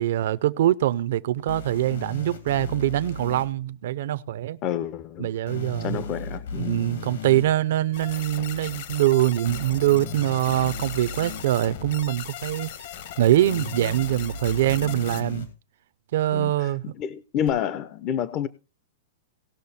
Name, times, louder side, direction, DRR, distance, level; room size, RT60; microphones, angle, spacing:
voice 1, 0.0-4.6 5.2-6.0 6.6-12.7 13.2-15.5 16.1-16.9, right 13 dB, 60° right, 0.5 m, -23 dB
sound 1, 1.5-3.4 5.5-7.5 9.5-11.4 13.5-15.5 17.5-17.6, left 3 dB, 75° left, 3.1 m, -36 dB
voice 2, 4.6-5.3 5.8-6.9 16.3-18.5, left 9 dB, 30° left, 0.5 m, -29 dB
sound 2, 7.9-15.2, left 10 dB, 55° left, 1.2 m, -38 dB
18.0 x 6.3 x 4.1 m
supercardioid pair, 160°, 0 cm